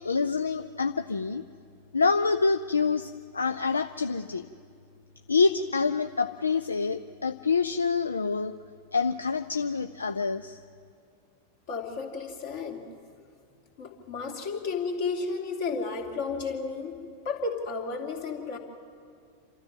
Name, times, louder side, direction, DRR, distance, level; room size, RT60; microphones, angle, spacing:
voice 1, 0.0-1.4 1.9-4.4 5.3-8.5 8.9-10.6, left 4 dB, 75° left, 10 dB, 0.4 m, -26 dB
voice 2, 11.7-12.8 13.8-17.0 17.2-18.6, left 4 dB, 50° left, 2 dB, 2.5 m, -32 dB
28.0 x 13.0 x 7.5 m, 2.3 s
figure-of-eight pair, 90°, 0 cm